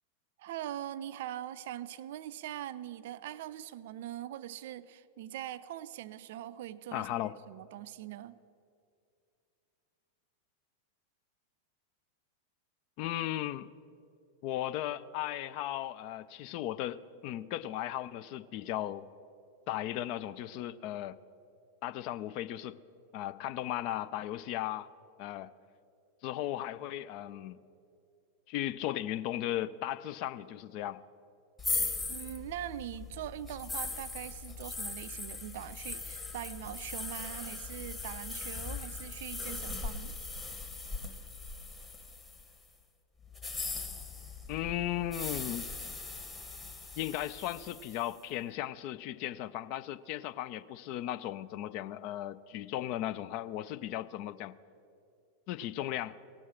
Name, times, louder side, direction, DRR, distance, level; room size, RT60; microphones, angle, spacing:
voice 1, 0.4-8.4 32.1-40.2, right 12 dB, 55° right, 16 dB, 0.4 m, -42 dB
voice 2, 6.9-7.3 13.0-13.7 14.4-19.1 19.7-21.2 21.8-22.8 23.1-24.9 25.2-25.5 26.2-27.6 28.5-31.0 44.5-45.7 47.0-54.5 55.5-56.2, left 13 dB, 45° left, 15 dB, 0.4 m, -36 dB
sound 1, 31.6-42.6 43.3-48.1, left 3 dB, 15° left, 1.3 m, -39 dB
17.5 x 6.3 x 7.3 m, 2.5 s
figure-of-eight pair, 90°, 0 cm